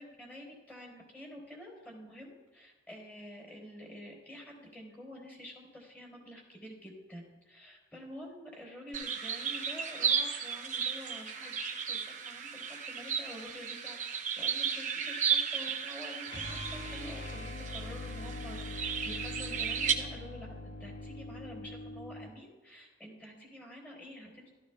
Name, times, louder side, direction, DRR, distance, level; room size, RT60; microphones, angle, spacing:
voice 1, 0.0-24.5, left 1 dB, 10° left, -1 dB, 4.2 m, -48 dB
sound 1, 8.9-19.9, right 7 dB, 40° right, 0.9 m, -34 dB
sound 2, 16.2-22.3, left 2 dB, 75° left, 1.9 m, -42 dB
16.5 x 14.0 x 2.4 m, 1.3 s
head